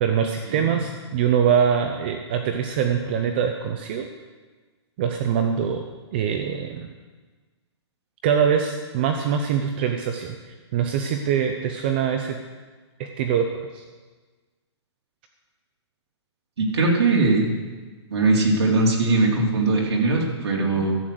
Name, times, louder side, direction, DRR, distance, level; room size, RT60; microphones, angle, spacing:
voice 1, 0.0-4.1 5.0-5.8 6.1-6.9 8.2-12.4 13.0-13.8, right 7 dB, 20° right, 5 dB, 0.6 m, -23 dB
voice 2, 16.6-17.6 18.1-21.0, right 3 dB, 65° right, -2 dB, 3.5 m, -20 dB
12.5 x 8.2 x 7.7 m, 1.3 s
hypercardioid pair, 175°, 15 cm